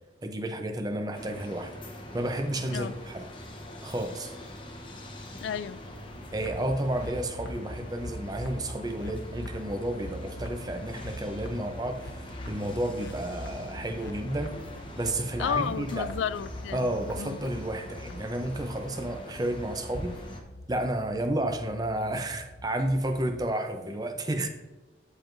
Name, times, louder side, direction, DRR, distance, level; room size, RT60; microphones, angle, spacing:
voice 1, 0.2-1.7 2.1-3.2 3.8-4.3 6.3-14.6 15.0-16.1 16.7-20.2 20.7-24.5, right 1 dB, 20° right, 0.6 m, -31 dB
sound 1, 1.1-20.4, left 1 dB, 25° left, 0.9 m, -44 dB
voice 2, 5.4-5.8 15.4-16.9 17.2-17.4, left 7 dB, 80° left, 0.3 m, -31 dB
sound 2, 6.1-23.3, equal, 60° left, 0.8 m, -43 dB
13.0 x 4.5 x 2.6 m
head